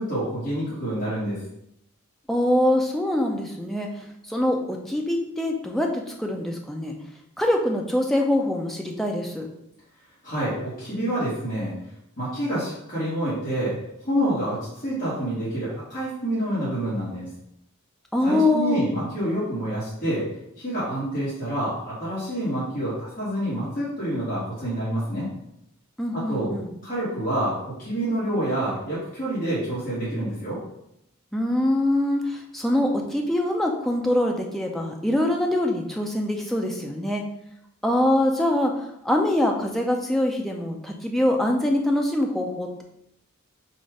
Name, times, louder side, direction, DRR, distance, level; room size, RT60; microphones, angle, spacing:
voice 1, 0.0-1.4 10.2-11.7 12.2-17.3 18.2-20.3 20.6-25.3 26.1-26.6 26.8-30.6, right 1 dB, 40° left, -10 dB, 1.6 m, -27 dB
voice 2, 2.3-3.9 4.3-7.0 7.4-9.5 18.1-18.8 26.0-26.7 31.3-37.2 37.8-42.8, left 1 dB, ahead, 0 dB, 0.4 m, -24 dB
4.2 x 2.5 x 4.7 m, 0.79 s
head